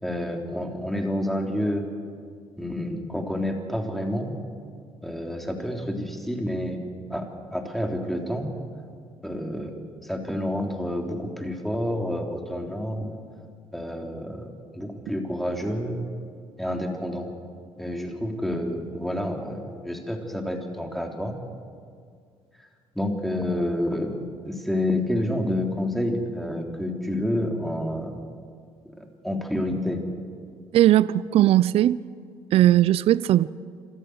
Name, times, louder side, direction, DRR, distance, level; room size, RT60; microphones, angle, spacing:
voice 1, 0.0-1.8 2.6-4.4 5.0-6.8 7.1-8.5 9.2-9.7 10.0-13.2 13.7-16.0 16.6-17.3 17.8-21.4 22.6-22.7 22.9-24.1 24.4-28.2 29.0-30.0, left 1 dB, ahead, 3.5 m, -29 dB
voice 2, 30.7-32.0 32.5-33.5, right 13 dB, 65° right, 0.5 m, -18 dB
26.0 x 14.5 x 8.0 m
supercardioid pair, 80°, 11 cm